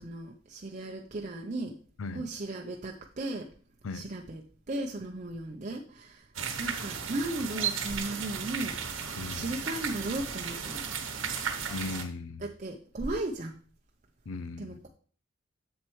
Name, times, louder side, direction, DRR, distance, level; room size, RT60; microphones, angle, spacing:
voice 1, 0.0-1.8 2.1-3.5 3.9-4.4 4.7-6.3 6.6-8.8 9.3-10.9 12.4-13.6 14.6-14.9, right 2 dB, 40° right, 1 dB, 0.6 m, -36 dB
voice 2, 2.0-2.3 3.8-4.1 6.4-6.6 9.2-9.5 11.7-12.5 14.3-14.8, left 3 dB, 85° left, 15 dB, 0.5 m, -38 dB
sound 1, 6.3-12.0, right 6 dB, 75° right, 1.1 m, -35 dB
7.5 x 7.3 x 3.1 m, 0.41 s
head